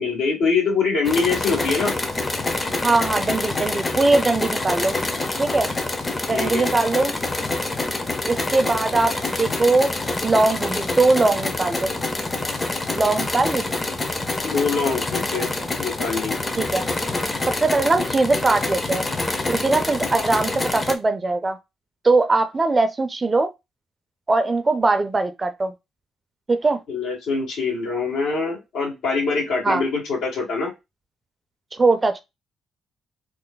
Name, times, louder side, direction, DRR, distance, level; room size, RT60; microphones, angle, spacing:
voice 1, 0.0-2.0 6.3-6.7 14.4-15.5 15.8-16.4 26.9-30.7, left 4 dB, 85° left, 1.9 m, -24 dB
sound 1, 1.0-20.9, left 2 dB, 25° left, 0.6 m, -26 dB
voice 2, 2.8-5.0 5.4-5.7 6.3-7.1 8.2-9.9 10.2-11.9 12.9-13.6 16.6-16.8 17.5-19.1 19.5-21.6 22.0-23.5 24.3-25.7 26.5-26.8 29.6-29.8 31.7-32.2, right 3 dB, 25° right, 0.5 m, -20 dB
3.2 x 2.0 x 3.8 m
cardioid pair, 90°, 0 cm